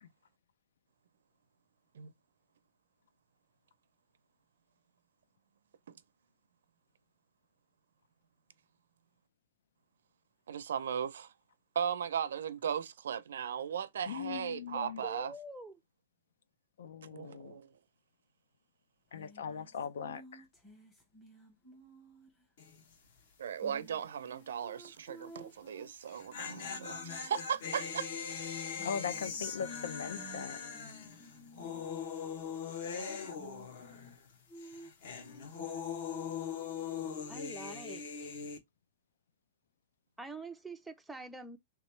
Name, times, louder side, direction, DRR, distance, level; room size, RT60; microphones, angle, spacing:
voice 1, 10.5-11.3 11.7-15.3 17.1-17.7 23.4-28.1 28.4-28.6, right 8 dB, 85° right, 0.5 m, -37 dB
voice 2, 14.1-15.0 16.8-17.6 19.1-20.4 28.8-30.6, left 7 dB, 80° left, 0.5 m, -40 dB
voice 3, 14.7-15.8 37.3-38.3 40.2-41.6, right 2 dB, 5° right, 0.4 m, -46 dB
sound 1, 19.1-22.4 23.6-27.4 28.8-31.9 33.2-34.2 34.5-37.4, right 1 dB, 15° left, 1.0 m, -54 dB
sound 2, 22.6-22.9 23.2-23.3 25.9-34.3 34.6-38.6, left 6 dB, 50° left, 0.9 m, -41 dB
3.5 x 3.0 x 3.1 m
supercardioid pair, 180°, 0 cm